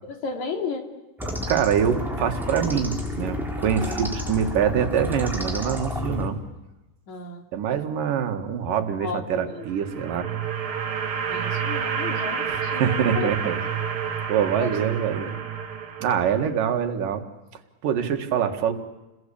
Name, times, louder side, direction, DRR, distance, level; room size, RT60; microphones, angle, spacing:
voice 1, 0.0-0.9 3.6-4.1 7.1-7.5 9.0-9.7 11.3-13.5 14.6-14.8 15.2-15.3 16.4-16.5, left 5 dB, 60° left, 4 dB, 4.1 m, -34 dB
sound 1, 1.2-6.3, left 1 dB, ahead, 4.2 m, -30 dB
voice 2, 1.5-6.4 7.5-10.3 12.5-13.6 14.3-15.3 16.0-17.2 17.8-18.7, right 8 dB, 85° right, 5 dB, 3.4 m, -24 dB
sound 2, 9.5-16.6, right 7 dB, 45° right, 2.5 m, -29 dB
29.0 x 21.5 x 8.6 m, 1.0 s
omnidirectional pair, 3.7 m